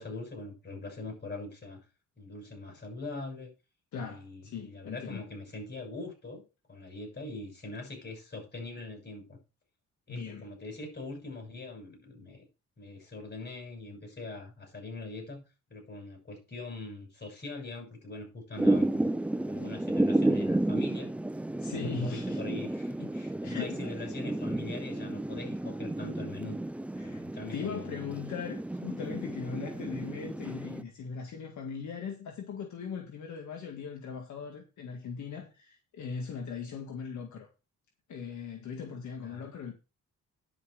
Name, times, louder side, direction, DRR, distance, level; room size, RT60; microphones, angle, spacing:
voice 1, 0.0-1.8 2.2-3.5 3.9-6.4 6.7-9.4 10.1-12.5 12.8-15.4 15.7-19.1 19.5-21.1 21.6-26.6 27.0-28.1 29.0-29.2 39.2-39.5, left 2 dB, 35° left, 6.8 m, -42 dB
voice 2, 3.9-5.2 10.1-10.5 21.6-22.4 23.4-24.3 27.0-27.2 27.5-37.5 38.1-39.7, left 6 dB, 70° left, 1.9 m, -39 dB
Thunder / Rain, 18.6-30.8, right 1 dB, 5° right, 0.4 m, -32 dB
10.5 x 6.4 x 5.0 m
cardioid pair, 90°, 30 cm